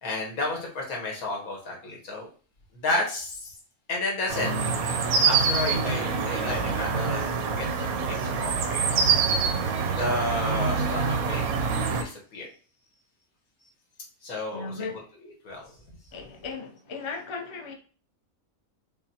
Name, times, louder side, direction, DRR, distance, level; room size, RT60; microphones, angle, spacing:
voice 1, 0.0-2.3 2.7-3.5 3.9-4.5 5.3-9.0 9.8-11.6 12.0-12.5 14.2-14.9 15.2-15.6, left 2 dB, 85° left, 1.6 m, -32 dB
sound 1, 4.3-12.0, right 5 dB, 85° right, 1.1 m, -25 dB
voice 2, 14.5-15.0 16.1-17.7, left 4 dB, 45° left, 0.3 m, -36 dB
5.5 x 2.2 x 2.7 m
omnidirectional pair, 1.5 m